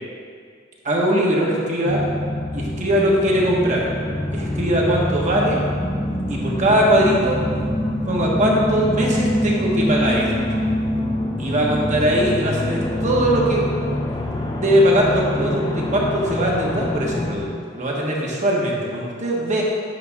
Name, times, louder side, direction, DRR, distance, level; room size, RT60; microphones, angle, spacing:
voice 1, 0.8-2.0 2.5-3.9 4.3-5.6 6.3-7.4 8.1-10.3 11.4-13.7 14.5-17.5 17.7-19.6, right 1 dB, 35° right, -3 dB, 1.3 m, -20 dB
sound 1, 1.9-17.4, left 1 dB, 20° left, 0.6 m, -25 dB
9.3 x 3.4 x 6.1 m, 2.1 s
head